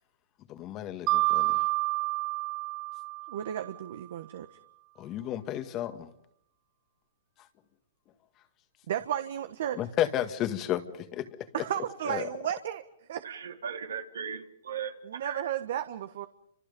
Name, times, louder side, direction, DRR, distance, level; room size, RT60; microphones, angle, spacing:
voice 1, 0.5-1.6 5.0-6.1 9.8-11.3 12.1-12.3, left 12 dB, 25° left, 1.7 m, -32 dB
Mallet percussion, 1.1-3.8, right 21 dB, 30° right, 1.1 m, -29 dB
voice 2, 3.3-4.5 8.9-9.8 11.5-12.8 13.1-13.3 15.0-16.3, right 10 dB, 60° right, 1.4 m, -33 dB
voice 3, 13.2-15.5, right 7 dB, 85° right, 3.6 m, -38 dB
29.5 x 26.5 x 5.4 m
hypercardioid pair, 150°, 0 cm